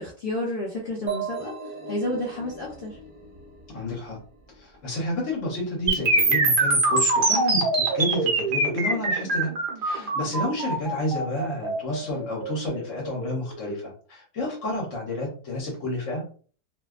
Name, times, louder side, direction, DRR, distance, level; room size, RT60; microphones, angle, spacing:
voice 1, 0.0-1.6 1.9-3.0, left 1 dB, 75° left, -4 dB, 0.5 m, -30 dB
sound 1, 1.1-4.7, right 6 dB, 45° right, 0.7 m, -37 dB
voice 2, 3.7-4.2 4.5-9.6 9.8-16.3, left 1 dB, 55° left, -2 dB, 1.0 m, -30 dB
sound 2, 5.9-13.8, right 2 dB, 80° right, 0.4 m, -24 dB
2.6 x 2.2 x 2.3 m, 0.42 s
omnidirectional pair, 1.7 m